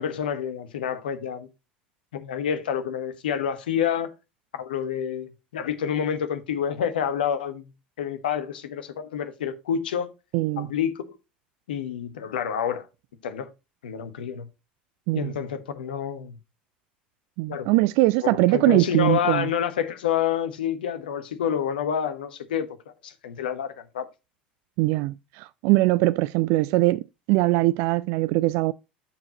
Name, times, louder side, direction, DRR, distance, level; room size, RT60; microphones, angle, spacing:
voice 1, 0.0-1.5 2.1-4.1 4.5-7.7 8.0-10.1 10.6-11.2 11.7-12.9 13.2-13.5 13.8-14.5 15.1-16.4 17.5-17.7 18.2-22.8 23.0-24.1, left 8 dB, 75° left, 1.3 m, -28 dB
voice 2, 10.3-10.7 15.1-15.3 17.4-19.5 24.8-28.7, right 19 dB, 60° right, 0.3 m, -22 dB
12.5 x 4.8 x 2.9 m
hypercardioid pair, 70°, 5 cm